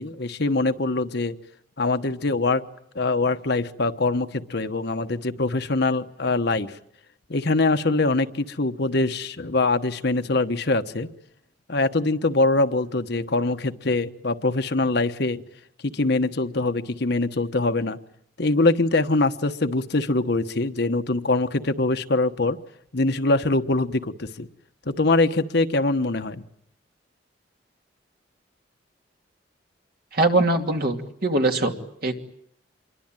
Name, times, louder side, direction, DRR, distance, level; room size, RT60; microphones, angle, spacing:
voice 1, 0.0-1.3 1.8-2.7 2.9-6.8 7.3-11.1 11.7-15.4 15.8-18.0 18.4-22.6 22.9-24.5 24.9-26.4, left 2 dB, 60° left, 8 dB, 1.2 m, -23 dB
voice 2, 30.1-31.7 32.0-32.2, right 2 dB, 55° right, 4 dB, 2.7 m, -22 dB
27.0 x 23.0 x 9.0 m, 0.71 s
head